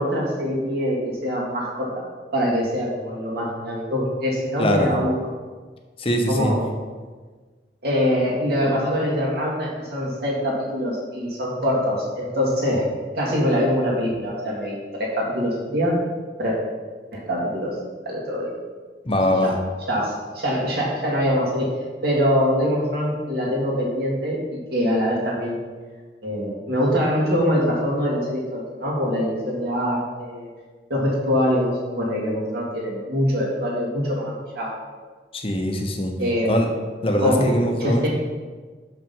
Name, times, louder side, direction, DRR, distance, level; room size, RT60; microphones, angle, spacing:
voice 1, 0.0-2.0 2.3-5.1 6.3-6.6 7.8-12.8 13.1-16.0 16.4-16.6 17.1-17.8 18.1-18.6 19.2-19.5 19.9-21.8 22.0-25.6 26.2-30.5 30.9-35.0 36.2-36.5 37.2-37.4 37.8-38.1, equal, 60° right, -4 dB, 2.2 m, -24 dB
voice 2, 6.0-6.5 19.0-19.5 35.3-36.1 36.5-36.7 37.0-38.1, left 1 dB, 30° left, 3 dB, 0.9 m, -22 dB
6.0 x 5.7 x 5.4 m, 1.4 s
head